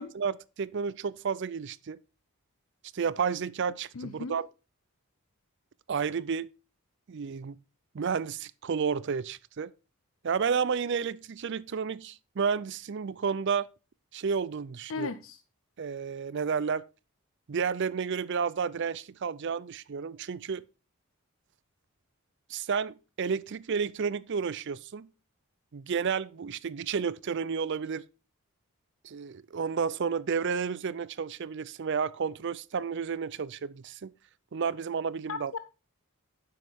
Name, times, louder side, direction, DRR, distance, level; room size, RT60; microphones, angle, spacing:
voice 1, 0.0-2.0 2.9-4.5 5.9-6.5 7.1-7.6 7.9-9.7 10.2-13.7 14.1-15.1 15.8-16.8 17.5-20.6 22.5-25.1 25.7-28.0 29.0-34.1 34.5-35.5, right 6 dB, 50° right, 0.4 m, -31 dB
voice 2, 3.9-4.4 14.9-15.4 35.3-35.6, left 4 dB, 65° left, 0.6 m, -36 dB
9.7 x 7.7 x 3.6 m
head